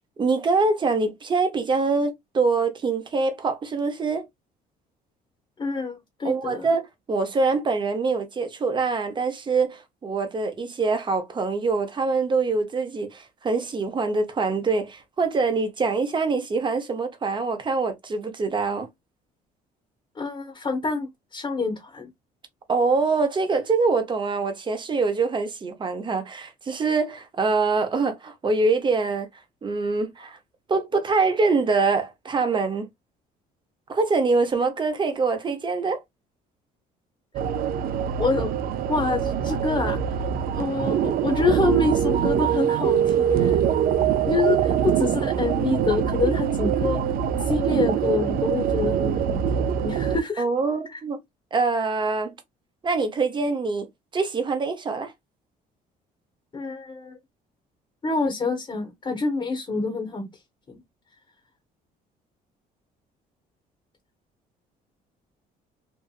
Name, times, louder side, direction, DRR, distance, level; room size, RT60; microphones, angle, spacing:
voice 1, 0.2-4.3 6.2-18.9 22.7-29.3 29.6-30.4 30.7-32.9 33.9-36.0 50.4-51.2 51.5-52.3 52.8-53.9 54.1-55.1, right 4 dB, 30° right, 0.7 m, -24 dB
voice 2, 5.6-6.7 20.2-22.1 38.2-38.5 38.9-40.2 40.5-43.6 44.3-47.0 47.4-50.4 50.9-51.0 56.5-57.2 58.0-60.3 60.7-60.8, left 3 dB, 30° left, 1.0 m, -27 dB
sound 1, 37.3-50.2, right 8 dB, 60° right, 0.4 m, -23 dB
2.7 x 2.5 x 2.3 m
cardioid pair, 110°, 17 cm